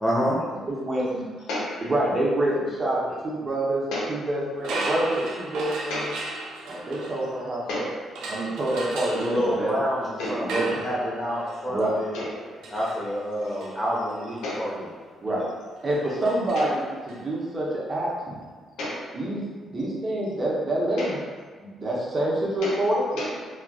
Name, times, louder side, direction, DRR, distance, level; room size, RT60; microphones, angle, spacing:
voice 1, 0.0-0.4 9.2-12.1 12.7-14.8 15.4-15.5, equal, 15° left, -6 dB, 0.9 m, -28 dB
voice 2, 0.7-1.2 1.8-3.8 4.1-6.1 6.7-7.9 8.3-9.8 10.2-10.9 11.7-11.9 15.2-15.4 15.8-18.3 19.1-21.2 21.6-23.0, right 1 dB, 40° right, -5 dB, 0.8 m, -27 dB
voice 3, 1.5-1.9 3.9-4.2 5.9-6.1 7.7-8.0 9.2-9.6 10.2-10.4 12.1-12.5 14.4-14.7 16.5-16.7 18.8-19.2 21.0-21.2 22.6-22.8 23.2-23.6, left 1 dB, 90° left, -5 dB, 0.7 m, -32 dB
sound 1, 4.6-7.7 8.1-17.2, right 2 dB, 85° right, 0.4 m, -37 dB
3.1 x 2.4 x 2.3 m, 1.5 s
cardioid pair, 90°, 0 cm